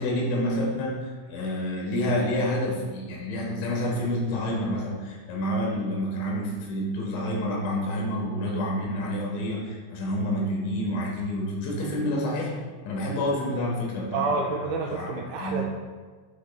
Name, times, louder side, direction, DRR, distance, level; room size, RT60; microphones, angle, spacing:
voice 1, 0.0-12.5 12.8-14.6 14.9-15.1 15.4-15.6, left 1 dB, 70° left, -2 dB, 3.5 m, -28 dB
voice 2, 14.1-15.7, right 3 dB, 85° right, 0 dB, 2.6 m, -28 dB
13.5 x 4.6 x 2.3 m, 1.5 s
omnidirectional pair, 5.8 m